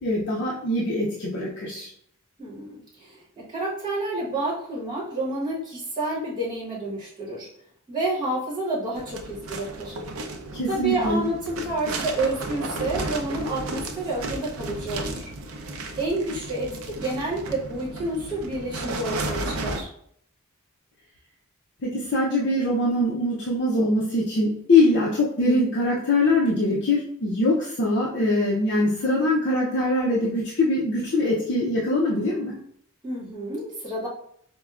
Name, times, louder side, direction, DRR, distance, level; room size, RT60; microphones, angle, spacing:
voice 1, 0.0-1.9 10.5-11.3 21.8-32.6, left 2 dB, 55° left, -4 dB, 0.5 m, -23 dB
voice 2, 2.4-7.5 7.9-9.9 10.7-15.3 16.0-19.9 33.0-34.1, right 2 dB, 20° right, -6 dB, 1.1 m, -29 dB
sound 1, 8.9-19.8, right 2 dB, 80° right, 0.5 m, -34 dB
4.4 x 2.1 x 2.3 m, 0.66 s
head